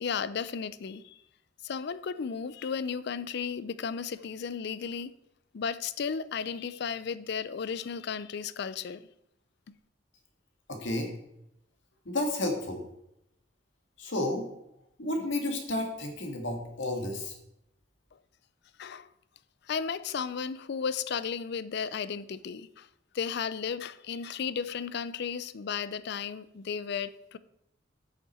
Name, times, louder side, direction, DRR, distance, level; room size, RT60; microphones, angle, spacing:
voice 1, 0.0-1.2 1.6-5.1 5.5-9.0 18.8-19.1 19.7-22.9 23.1-27.4, left 6 dB, 60° left, 0.4 m, -34 dB
voice 2, 10.7-11.1 12.0-12.8 14.0-14.4 15.0-17.3, left 1 dB, 80° left, 1.8 m, -31 dB
8.5 x 6.5 x 4.3 m
head